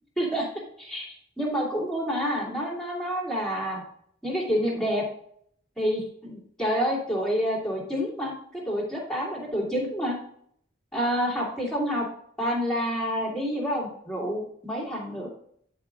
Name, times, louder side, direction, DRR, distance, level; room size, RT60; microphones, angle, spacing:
voice 1, 0.2-0.5 0.8-1.1 1.4-3.8 4.2-5.1 5.8-10.2 10.9-12.1 12.4-15.3, equal, 5° left, -3 dB, 2.6 m, -28 dB
10.5 x 5.1 x 3.8 m, 0.64 s
head